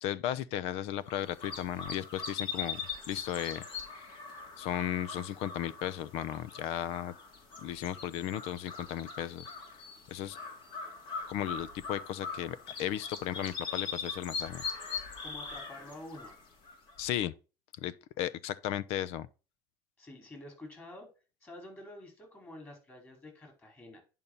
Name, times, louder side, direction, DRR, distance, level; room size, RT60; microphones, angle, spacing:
voice 1, 0.0-2.8 3.1-3.6 4.6-7.1 7.6-9.5 10.1-10.4 11.3-14.6 17.0-17.3 17.8-19.3, left 11 dB, 65° left, 0.7 m, -35 dB
sound 1, 1.1-17.1, left 5 dB, 45° left, 3.0 m, -41 dB
voice 2, 15.2-16.3 20.0-21.1 21.4-24.0, left 1 dB, 20° left, 4.8 m, -48 dB
10.5 x 5.5 x 4.1 m
cardioid pair, 130°, 11 cm